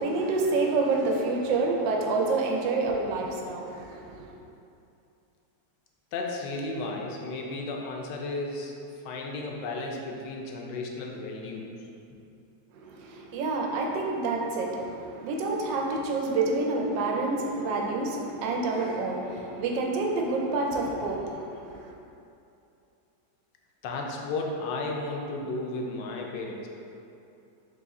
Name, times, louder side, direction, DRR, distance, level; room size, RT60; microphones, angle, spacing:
voice 1, 0.0-4.3 12.7-21.9, right 3 dB, 90° right, 0 dB, 1.3 m, -28 dB
voice 2, 6.1-8.7 9.0-11.7 23.8-26.7, left 2 dB, 75° left, 0 dB, 1.2 m, -34 dB
4.1 x 3.1 x 3.5 m, 2.7 s
omnidirectional pair, 1.9 m